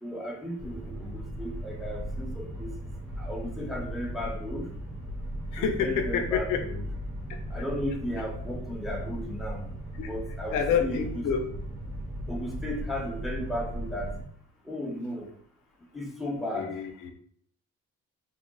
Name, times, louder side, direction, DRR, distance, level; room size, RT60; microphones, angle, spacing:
voice 1, 0.0-2.7 3.2-4.7 5.6-6.8 7.5-9.6 10.1-11.1 12.3-14.2 14.6-15.3 15.9-16.7, equal, ahead, -1 dB, 0.8 m, -35 dB
sound 1, 0.6-14.2, equal, 50° right, 1.1 m, -37 dB
voice 2, 5.5-6.6 10.0-10.1 10.5-11.5 16.5-17.1, left 7 dB, 90° left, 4 dB, 0.6 m, -28 dB
2.7 x 2.1 x 3.8 m, 0.62 s
cardioid pair, 90°, 30 cm